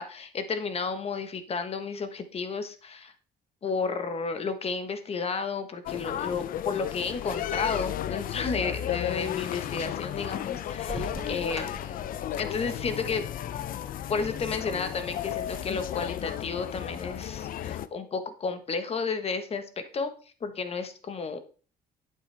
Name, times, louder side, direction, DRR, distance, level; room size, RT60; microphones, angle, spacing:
voice 1, 0.0-3.1 3.6-13.2 14.1-19.6 19.9-20.1 20.4-21.4, left 4 dB, 35° left, 9 dB, 1.3 m, -32 dB
sound 1, 5.9-17.9, left 11 dB, 55° left, 0.6 m, -34 dB
sound 2, 10.9-14.9, right 1 dB, 5° right, 3.2 m, -43 dB
8.8 x 7.8 x 3.4 m, 0.38 s
cardioid pair, 110°, 17 cm